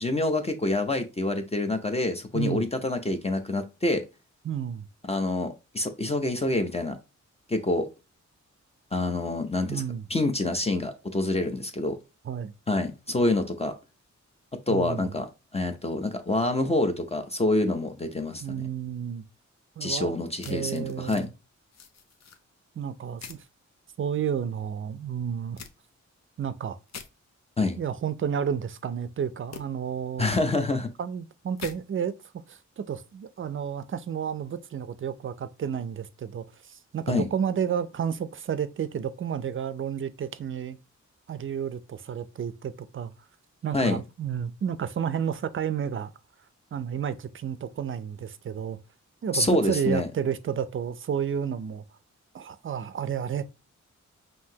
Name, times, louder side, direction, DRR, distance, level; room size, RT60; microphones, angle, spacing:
voice 1, 0.0-4.0 5.1-7.0 7.5-7.9 8.9-9.8 10.1-12.0 12.7-13.7 14.7-15.3 15.5-18.6 19.8-21.3 27.6-27.8 30.2-30.9 37.1-37.3 43.7-44.0 49.3-50.1, left 2 dB, 20° left, 0.5 m, -26 dB
voice 2, 4.4-4.8 9.7-10.0 12.3-12.5 14.7-15.1 18.4-19.2 19.8-20.2 20.5-21.3 22.8-23.4 24.0-25.6 26.4-26.8 27.8-30.4 31.0-40.8 41.3-43.1 43.6-46.1 46.7-48.8 49.2-51.8 52.3-53.5, right 8 dB, 45° right, 0.4 m, -31 dB
sound 1, 20.4-21.3 21.7-22.4 23.2-23.5 25.6-25.7 26.9-27.1 29.5-29.6 31.6-31.8, left 7 dB, 65° left, 0.6 m, -43 dB
5.6 x 2.7 x 2.7 m
wide cardioid pair, 115°, 30 cm